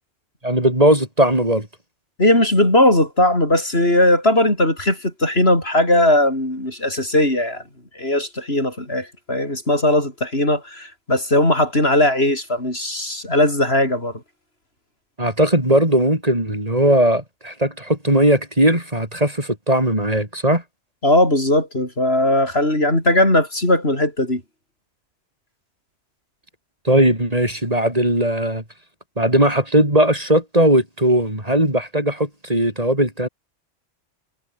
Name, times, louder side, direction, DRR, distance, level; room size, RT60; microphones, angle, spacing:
voice 1, 0.4-1.7 15.2-20.6 26.8-28.6 29.2-33.3, right 1 dB, 35° right, 5.9 m, -18 dB
voice 2, 2.2-7.6 8.0-14.1 21.0-24.4, left 1 dB, 65° left, 7.5 m, -18 dB
omnidirectional pair, 1.1 m